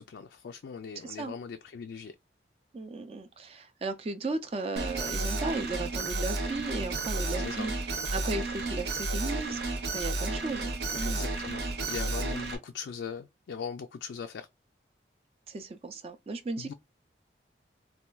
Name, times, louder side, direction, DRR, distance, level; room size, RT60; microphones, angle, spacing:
voice 1, 0.0-2.1 7.4-7.7 11.0-11.6 11.9-14.5 16.6-16.7, left 6 dB, 75° left, 0.3 m, -40 dB
voice 2, 1.0-1.3 2.7-11.3 15.5-16.7, right 3 dB, 35° right, 0.3 m, -36 dB
Alarm, 4.8-12.6, right 2 dB, 75° right, 0.8 m, -32 dB
4.2 x 2.2 x 2.2 m
head